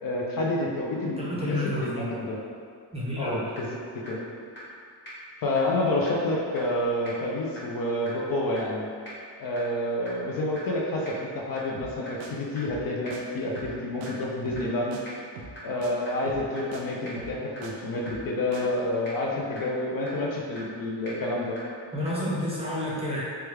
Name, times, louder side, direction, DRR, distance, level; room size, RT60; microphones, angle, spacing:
voice 1, 0.0-2.4 3.2-3.8 4.1-4.2 5.4-8.9 9.4-15.0 15.6-21.6, left 1 dB, 50° left, -2 dB, 0.5 m, -29 dB
voice 2, 1.2-2.1 2.9-3.4 21.9-23.2, left 1 dB, 15° right, -7 dB, 0.6 m, -30 dB
sound 1, 3.6-3.7 4.1-4.2 4.6-4.7 5.1-5.2 5.6-5.7 6.1-6.2 6.6-6.7 7.1-7.2 7.6-7.7 8.1-8.2 8.6-8.7 9.1-9.2 9.6-9.7 10.1-10.2 10.6-10.7 11.1-11.2 11.6-11.7 12.1-12.2 12.6-12.7 13.1-13.2 13.6-13.7 14.1-14.2 14.6-14.7 15.0-15.1 15.6-15.7 16.1-16.2 16.6-16.7 17.1-17.2 17.6-17.7 18.1-18.2 18.6-18.7 19.1-19.2 19.6-19.7 20.1-20.2 20.6-20.7 21.1-21.2 21.6-21.7 22.1-22.2, equal, 25° left, 1.2 m, -42 dB
sound 2, 11.7-11.9 12.2-12.3 12.6-12.8 13.1-13.2 13.5-13.8 14.0-14.1 14.4-14.7 14.9-15.0 15.4-15.6 15.8-15.9 16.3-16.5 16.7-16.8 17.2-17.7 18.1-18.3 18.5-18.6, right 4 dB, 90° right, 0.5 m, -42 dB
3.1 x 2.3 x 3.1 m, 2.3 s
cardioid pair, 120°, 44 cm